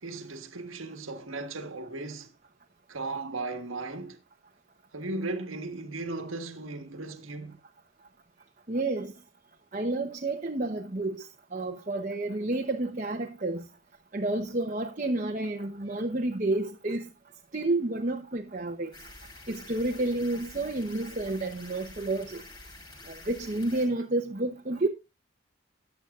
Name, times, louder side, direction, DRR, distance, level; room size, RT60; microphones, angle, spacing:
voice 1, 0.0-2.3 2.9-4.2 4.9-7.6, right 2 dB, 80° right, 1.6 m, -36 dB
voice 2, 8.7-9.1 9.7-13.6 14.1-17.1 17.5-18.9 19.5-22.4 23.1-24.9, right 2 dB, 35° right, 0.9 m, -30 dB
sound 1, 18.9-23.9, left 2 dB, 20° left, 5.9 m, -48 dB
14.0 x 10.0 x 2.5 m
head